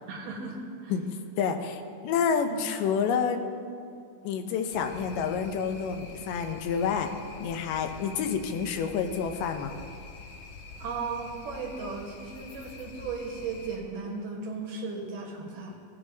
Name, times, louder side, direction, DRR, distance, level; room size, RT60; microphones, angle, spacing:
voice 1, 0.1-0.9 2.5-2.7 10.8-15.8, right 4 dB, 80° right, -1 dB, 3.0 m, -36 dB
voice 2, 1.4-3.4 4.2-7.1 7.4-9.7, left 6 dB, 90° left, 6 dB, 2.4 m, -28 dB
sound 1, 4.7-13.8, left 4 dB, 70° left, 2.3 m, -46 dB
17.0 x 8.4 x 2.8 m, 2.5 s
omnidirectional pair, 3.7 m